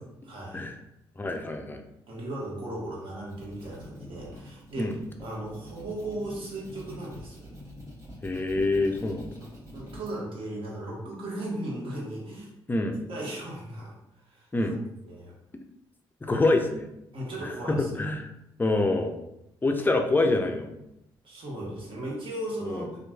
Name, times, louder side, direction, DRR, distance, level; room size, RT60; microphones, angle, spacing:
voice 1, 0.2-0.6 2.1-7.5 9.4-12.5 13.1-14.5 15.1-15.3 17.1-18.0 21.2-23.0, right 1 dB, 55° right, -4 dB, 1.2 m, -37 dB
voice 2, 1.2-1.8 4.8-4.9 8.2-9.3 12.7-13.0 14.5-14.8 16.2-16.9 17.4-18.3 18.6-19.2 19.6-20.8 22.6-22.9, left 2 dB, 20° left, 5 dB, 0.4 m, -26 dB
sound 1, 3.1-10.1, equal, 30° right, 1.1 m, -45 dB
2.9 x 2.4 x 2.3 m, 0.84 s
hypercardioid pair, 50°, 11 cm